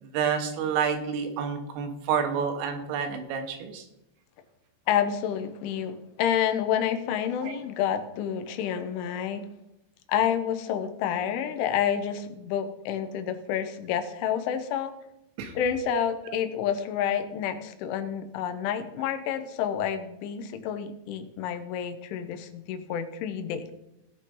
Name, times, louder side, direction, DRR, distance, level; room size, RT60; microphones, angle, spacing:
voice 1, 0.0-3.9 7.4-7.5 15.4-15.5 15.9-16.0, right 7 dB, 90° right, 5 dB, 3.9 m, -29 dB
voice 2, 4.9-9.4 10.1-14.9 15.6-23.7, left 9 dB, 80° left, 9 dB, 3.2 m, -29 dB
18.0 x 6.6 x 3.8 m, 0.87 s
omnidirectional pair, 5.6 m